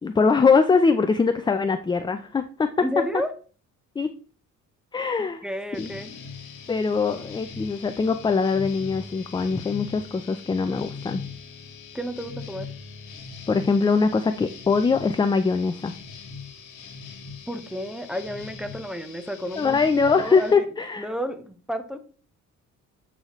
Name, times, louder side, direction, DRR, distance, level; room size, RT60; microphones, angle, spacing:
voice 1, 0.0-2.7 4.0-4.1 4.9-5.4 5.7-5.9 6.7-11.2 13.5-15.9 19.6-21.1, left 4 dB, 15° left, 9 dB, 0.4 m, -22 dB
voice 2, 2.8-3.3 5.4-6.1 11.9-12.7 17.5-19.8 20.2-20.7 21.0-22.0, equal, ahead, 9 dB, 0.7 m, -31 dB
sound 1, 5.7-20.5, left 5 dB, 85° left, 1.1 m, -41 dB
7.8 x 4.1 x 3.0 m, 0.40 s
cardioid pair, 90°, 30 cm